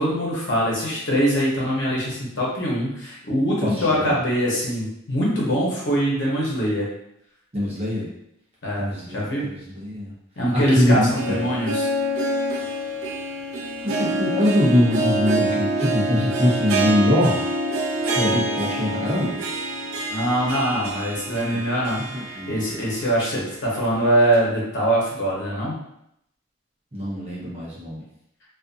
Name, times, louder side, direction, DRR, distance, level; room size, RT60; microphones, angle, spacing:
voice 1, 0.0-6.9 8.6-9.5 10.4-11.9 20.1-22.0 22.5-25.8, equal, 65° left, -5 dB, 0.9 m, -23 dB
voice 2, 7.5-8.1 8.8-10.1 10.5-11.4 13.8-17.4 18.1-19.4 21.4-21.6 22.4-22.5 26.9-28.0, left 1 dB, 30° right, -7 dB, 0.8 m, -22 dB
Harp, 10.9-23.0 23.4-23.5 24.3-24.4, right 1 dB, 80° right, 0.4 m, -26 dB
2.4 x 2.4 x 2.5 m, 0.78 s
head